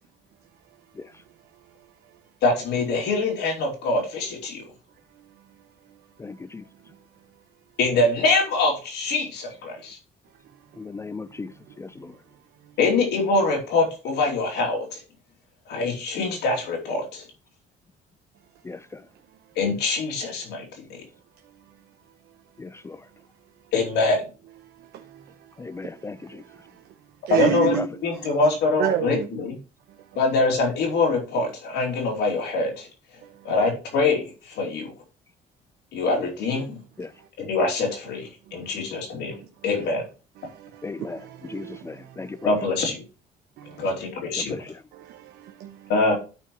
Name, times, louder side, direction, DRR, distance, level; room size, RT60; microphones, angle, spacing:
voice 1, 2.4-4.6 7.8-10.0 12.8-15.0 15.7-17.2 19.6-21.0 23.7-24.2 27.3-27.8 28.0-29.5 30.2-32.9 33.4-34.9 35.9-36.8 37.4-39.4 39.6-40.0 42.4-43.0 43.7-44.6 45.9-46.1, left 3 dB, 80° left, 2.8 m, -24 dB
voice 2, 6.2-6.6 10.8-11.5 11.8-12.1 18.6-19.0 22.6-23.0 25.6-26.4 27.5-27.9 37.0-37.1 40.8-42.6 44.4-44.8, left 3 dB, 15° left, 0.3 m, -36 dB
voice 3, 26.3-26.7 27.3-28.3 28.8-29.3 33.2-33.3 38.5-38.6 39.3-39.5 40.4-42.5 43.6-43.9 44.9-45.9, right 9 dB, 75° right, 0.8 m, -31 dB
13.0 x 4.6 x 3.0 m
cardioid pair, 110°, 17 cm